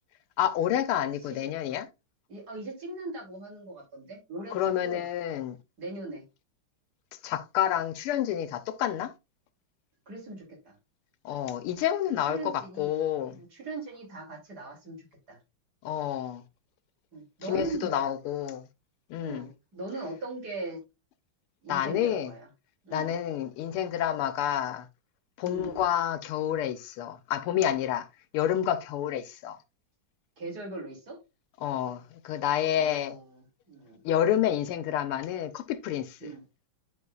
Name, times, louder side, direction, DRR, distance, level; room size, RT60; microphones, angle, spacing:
voice 1, 0.4-1.9 4.5-5.6 7.2-9.1 11.2-13.4 15.8-16.4 17.5-18.7 19.1-19.5 21.7-22.3 22.9-24.9 25.4-28.1 28.3-29.6 31.6-33.2 34.0-36.3, left 10 dB, 90° left, 1.7 m, -29 dB
voice 2, 2.3-4.6 4.8-5.0 5.8-6.2 10.1-10.7 12.3-12.9 13.3-15.0 15.3-15.4 17.1-18.1 19.2-20.8 21.6-22.5 22.8-23.2 25.4-25.8 30.4-31.2 32.7-34.0 36.2-36.4, right 2 dB, 45° right, 3.2 m, -39 dB
11.0 x 4.8 x 2.3 m
omnidirectional pair, 2.4 m